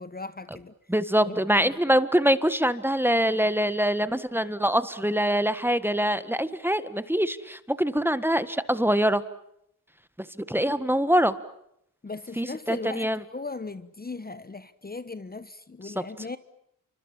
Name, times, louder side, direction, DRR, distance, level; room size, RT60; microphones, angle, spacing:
voice 1, 0.0-0.7 1.2-1.7 12.0-16.4, left 3 dB, 25° left, 1.2 m, -38 dB
voice 2, 0.9-9.2 10.3-11.3 12.4-13.2 15.8-16.0, equal, 5° right, 1.5 m, -24 dB
29.0 x 25.0 x 7.4 m
cardioid pair, 80°, 34 cm